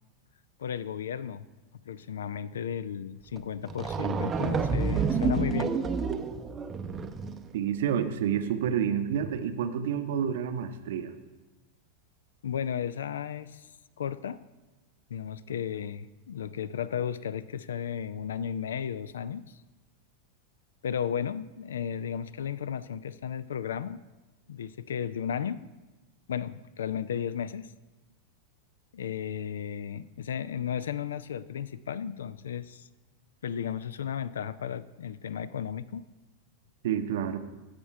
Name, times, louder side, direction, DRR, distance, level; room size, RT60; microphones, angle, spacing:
voice 1, 0.6-1.5 1.8-5.8 12.4-13.7 14.0-14.4 15.1-19.6 20.8-24.0 24.5-25.6 26.3-27.7 28.9-32.9 33.4-36.1, left 8 dB, 65° left, 17 dB, 0.3 m, -34 dB
sound 1, 3.4-3.5 3.7-7.5, right 5 dB, 20° right, 0.6 m, -29 dB
voice 2, 7.5-11.1 36.8-37.4, right 8 dB, 55° right, 9 dB, 0.7 m, -29 dB
15.0 x 5.2 x 4.6 m, 1.2 s
figure-of-eight pair, 90°, 0 cm